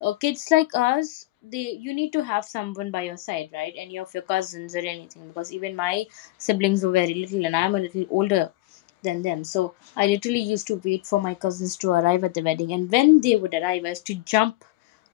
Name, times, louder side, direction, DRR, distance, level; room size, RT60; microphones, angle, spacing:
voice 1, 0.0-8.5 9.0-14.5, left 19 dB, 90° left, 3.1 m, -24 dB
open air
omnidirectional pair, 5.5 m